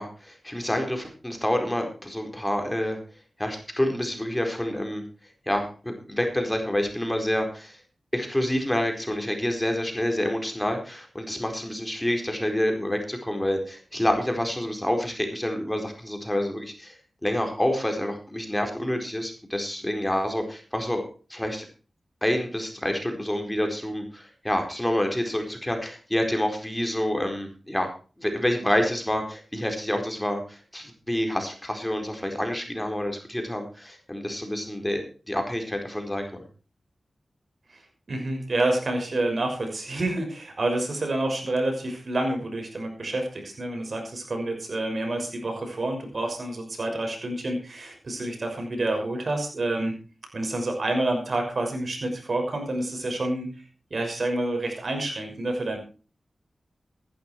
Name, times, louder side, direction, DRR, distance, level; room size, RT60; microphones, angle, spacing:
voice 1, 0.0-3.0 3.4-5.0 5.5-7.8 8.1-21.0 21.3-21.7 22.2-27.9 28.2-36.4, left 1 dB, 10° left, 4 dB, 4.5 m, -28 dB
voice 2, 37.7-50.0 50.3-53.6 53.9-55.8, right 2 dB, 60° right, 3 dB, 6.1 m, -28 dB
14.5 x 12.0 x 4.6 m, 0.36 s
cardioid pair, 50°, 0 cm